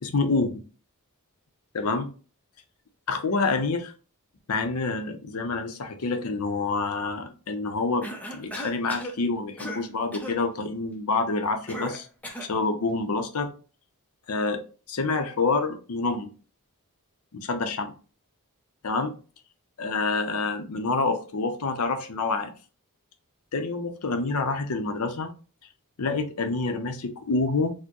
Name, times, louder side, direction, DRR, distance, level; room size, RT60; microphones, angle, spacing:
voice 1, 0.0-0.6 1.7-2.1 3.1-3.9 4.5-12.1 12.4-13.5 14.3-14.6 14.9-16.3 17.3-17.9 18.8-19.1 19.8-22.5 23.5-25.3 26.0-27.7, left 3 dB, 75° left, 7 dB, 0.6 m, -27 dB
Cough, 8.0-9.2 9.6-9.9 10.1-10.4 11.7-12.6, equal, 5° left, 0.5 m, -36 dB
4.3 x 2.1 x 2.9 m, 0.36 s
head